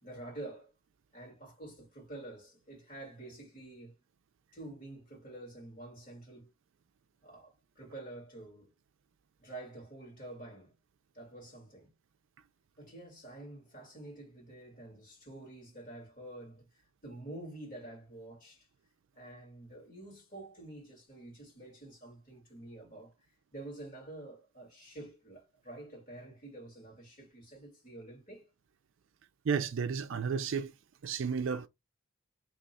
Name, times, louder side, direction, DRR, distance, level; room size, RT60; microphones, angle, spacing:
voice 1, 0.0-0.7 1.1-4.0 4.5-6.5 7.2-8.7 9.4-10.7 11.1-11.9 12.8-18.7 19.1-23.2 23.5-28.5, right 2 dB, 40° left, 1.8 m, -48 dB
voice 2, 29.4-30.7 31.0-31.7, right 6 dB, 60° right, 0.4 m, -32 dB
2.9 x 2.3 x 4.1 m
head